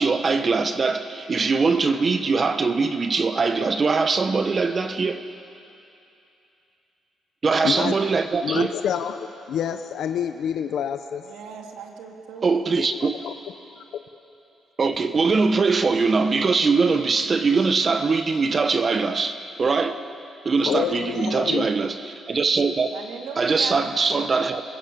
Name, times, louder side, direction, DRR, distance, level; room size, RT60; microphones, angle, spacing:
voice 1, 0.0-5.2 7.4-8.7 12.4-13.1 14.8-20.0 20.4-22.9 23.4-24.6, right 4 dB, 40° right, 1.1 m, -22 dB
voice 2, 7.6-7.9 8.4-11.2 12.9-13.3 20.6-21.7, left 8 dB, 70° left, 1.0 m, -27 dB
voice 3, 11.2-12.6 22.9-23.9, right 7 dB, 85° right, 2.8 m, -38 dB
29.5 x 20.5 x 8.6 m
cardioid pair, 90°, 0 cm